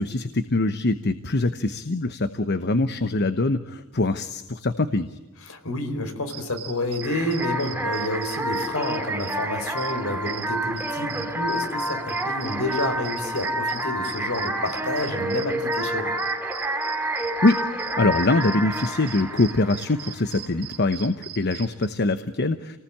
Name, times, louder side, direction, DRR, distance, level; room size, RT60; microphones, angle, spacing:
voice 1, 0.0-5.2 17.4-22.8, left 2 dB, 50° left, 10 dB, 1.0 m, -23 dB
voice 2, 5.5-16.1, left 1 dB, 65° left, 7 dB, 4.4 m, -29 dB
sound 1, 6.3-21.8, right 11 dB, 85° right, 2.2 m, -40 dB
sound 2, 7.0-20.5, right 1 dB, 10° right, 2.9 m, -29 dB
29.0 x 19.5 x 8.7 m, 1.1 s
head